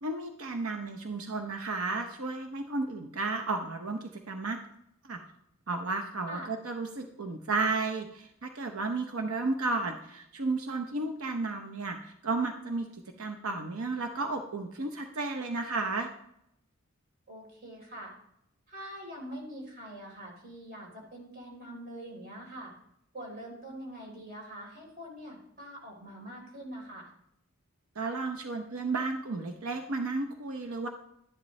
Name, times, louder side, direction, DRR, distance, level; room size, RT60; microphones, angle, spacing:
voice 1, 0.0-4.6 5.0-5.2 5.7-12.9 13.2-16.1 28.0-30.9, right 3 dB, 90° right, 5 dB, 0.8 m, -33 dB
voice 2, 17.3-18.1 18.7-22.7 23.1-27.1, right 1 dB, 45° right, -1 dB, 3.6 m, -44 dB
12.0 x 10.5 x 3.2 m, 0.79 s
head